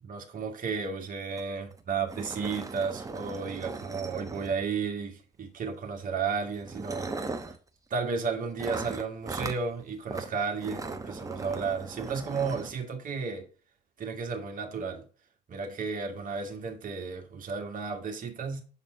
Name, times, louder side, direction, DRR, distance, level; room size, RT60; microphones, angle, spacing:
voice 1, 0.0-7.5 7.9-13.5 14.0-15.0 15.5-18.6, right 5 dB, 40° right, 1.7 m, -33 dB
sound 1, 1.4-1.5 1.7-1.8 2.1-4.8 5.8-6.0 6.6-7.6 8.6-9.6 10.1-10.3 10.6-12.7, right 3 dB, 15° right, 0.9 m, -38 dB
6.9 x 4.3 x 4.4 m
figure-of-eight pair, 55°, 20 cm